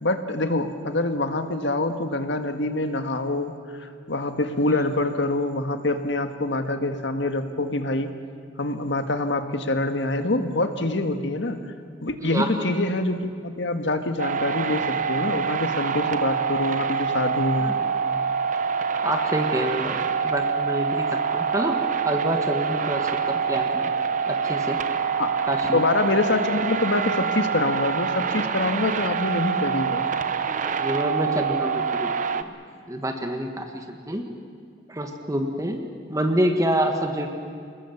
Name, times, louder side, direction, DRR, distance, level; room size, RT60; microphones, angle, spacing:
voice 1, 0.0-3.5 3.8-8.1 8.6-11.6 12.0-17.7 25.2-25.4 25.7-30.1, left 2 dB, 75° left, 7 dB, 1.7 m, -25 dB
sound 1, 14.2-32.4, right 6 dB, 45° right, 0.9 m, -26 dB
voice 2, 19.0-20.0 20.2-21.1 21.3-21.8 22.1-23.9 24.3-24.8 25.5-25.8 30.4-32.4 32.9-34.2 34.9-35.8 36.1-37.3, right 1 dB, 20° right, 4 dB, 1.6 m, -27 dB
26.5 x 21.0 x 7.2 m, 2.3 s
head